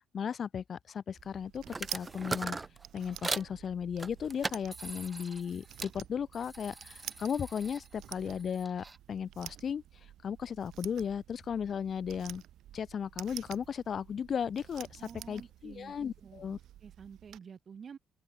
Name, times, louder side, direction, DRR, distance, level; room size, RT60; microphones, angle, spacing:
voice 1, 0.1-1.6 1.9-2.6 2.9-9.8 10.2-12.4 12.7-15.0 15.3-16.6, left 7 dB, 55° left, 1.2 m, -36 dB
sound 1, 1.2-17.4, right 12 dB, 80° right, 2.0 m, -50 dB
sound 2, 1.7-3.5 4.0-6.0 6.3-9.0, right 3 dB, 25° right, 1.0 m, -40 dB
voice 2, 15.0-15.9 16.2-18.0, right 7 dB, 50° right, 2.7 m, -50 dB
open air
cardioid pair, 90°, 0 cm